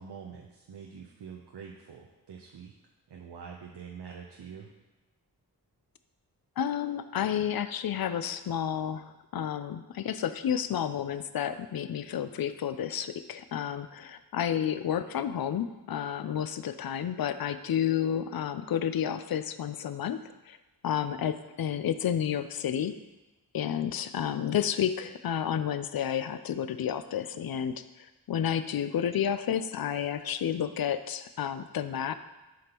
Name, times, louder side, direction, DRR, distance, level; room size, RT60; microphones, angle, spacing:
voice 1, 0.0-2.7 3.1-4.7, right 6 dB, 75° right, 0 dB, 0.7 m, -45 dB
voice 2, 6.6-20.2 20.5-20.6 20.8-22.9 23.5-27.7 28.3-32.1, left 9 dB, 60° left, 12 dB, 0.5 m, -31 dB
7.7 x 5.2 x 2.9 m, 1.1 s
cardioid pair, 55°, 41 cm